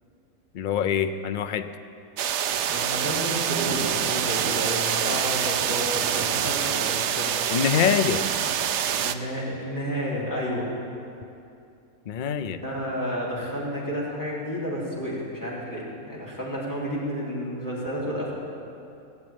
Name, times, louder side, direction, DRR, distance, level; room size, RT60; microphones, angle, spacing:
voice 1, 0.5-1.7 7.5-8.2 12.1-12.6, left 8 dB, 70° left, 10 dB, 0.4 m, -24 dB
sound 1, 2.2-9.1, right 9 dB, 65° right, 0.8 m, -26 dB
voice 2, 2.6-7.3 9.0-10.7 12.5-18.3, equal, 10° left, -6 dB, 3.3 m, -31 dB
17.0 x 7.6 x 8.8 m, 2.6 s
omnidirectional pair, 1.5 m